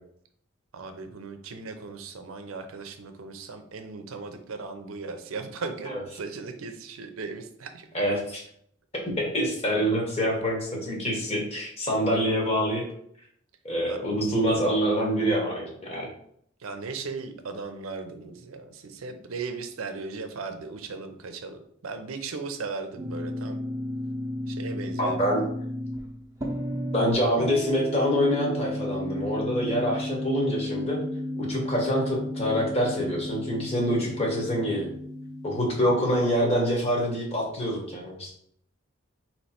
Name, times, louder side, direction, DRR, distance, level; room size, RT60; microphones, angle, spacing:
voice 1, 0.7-7.9 13.9-14.0 16.6-23.6 24.5-25.3, right 4 dB, 80° right, 7 dB, 0.5 m, -37 dB
voice 2, 7.9-8.4 9.2-12.8 13.6-16.0 25.0-25.4 26.9-31.0 31.4-34.9 35.4-38.3, equal, 30° left, -2 dB, 1.1 m, -26 dB
sound 1, 23.0-36.1, left 1 dB, 15° right, 0.7 m, -33 dB
3.1 x 2.9 x 4.3 m, 0.67 s
head